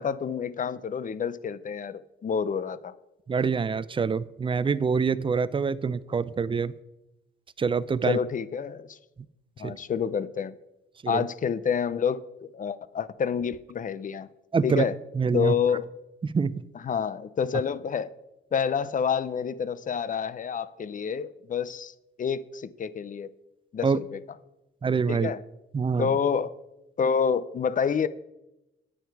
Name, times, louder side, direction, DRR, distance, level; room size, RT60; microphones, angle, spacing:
voice 1, 0.0-2.9 8.0-9.0 9.6-10.5 11.1-14.3 14.6-15.0 15.3-15.9 16.8-18.1 18.5-21.9 22.2-23.3 23.7-24.2 25.1-25.4 26.0-26.5 27.0-28.1, left 7 dB, 40° left, 0.5 m, -28 dB
voice 2, 3.3-6.7 7.6-8.2 9.6-9.7 11.0-11.2 14.5-14.8 15.1-15.5 16.2-16.6 23.8-24.0 24.8-25.3 25.7-26.2, right 5 dB, 25° right, 0.4 m, -25 dB
9.2 x 8.8 x 4.6 m
cardioid pair, 110°, 20 cm